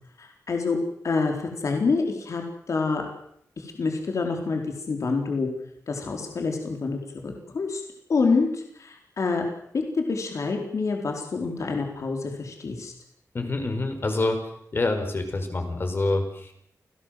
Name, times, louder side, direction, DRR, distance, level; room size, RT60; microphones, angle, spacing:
voice 1, 0.2-0.8 1.0-3.1 3.6-5.5 5.9-7.8 8.1-9.4 9.7-12.9, left 4 dB, 60° left, 3 dB, 4.3 m, -27 dB
voice 2, 13.3-14.4 14.7-16.5, left 2 dB, 40° left, 6 dB, 5.2 m, -26 dB
28.5 x 17.5 x 7.8 m, 0.72 s
wide cardioid pair, 115°, 6 cm